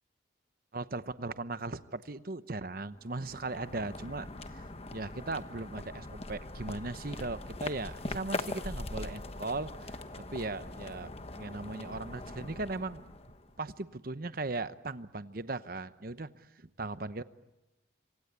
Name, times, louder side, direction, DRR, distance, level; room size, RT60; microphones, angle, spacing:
voice 1, 0.7-4.3 4.5-4.6 4.9-13.1 13.6-17.2, right 2 dB, 50° right, 13 dB, 0.9 m, -38 dB
sound 1, 2.9-13.7, left 2 dB, 30° left, 1.2 m, -42 dB
26.0 x 25.5 x 8.3 m, 1.0 s
head